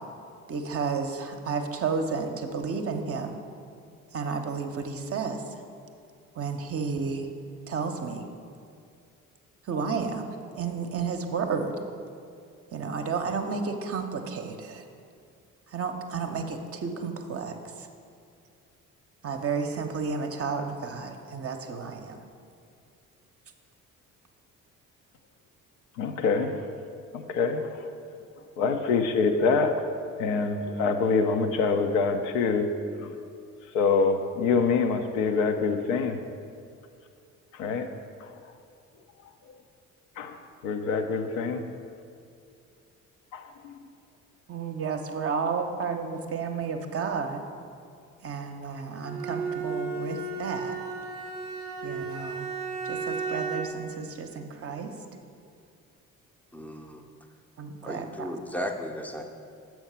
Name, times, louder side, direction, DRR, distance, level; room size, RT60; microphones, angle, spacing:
voice 1, 0.5-3.4 4.1-5.4 6.4-7.3 7.7-8.2 9.7-10.3 10.5-11.8 12.7-14.8 15.7-17.9 19.2-22.2 44.5-47.4 48.2-50.8 51.8-52.5 52.8-54.9 57.6-58.3, right 5 dB, 35° right, 5 dB, 0.7 m, -32 dB
voice 2, 26.0-26.6 27.3-27.7 28.6-29.8 30.2-32.7 33.0-33.1 33.7-36.2 37.6-37.9 40.2-40.3 40.6-41.6 43.3-43.4, left 4 dB, 70° left, 6 dB, 0.6 m, -25 dB
Bowed string instrument, 49.0-53.9, right 4 dB, 85° right, 0.6 m, -34 dB
voice 3, 56.5-57.1 57.8-59.2, equal, 5° left, 4 dB, 0.6 m, -35 dB
7.2 x 4.5 x 5.6 m, 2.4 s
figure-of-eight pair, 45°, 42 cm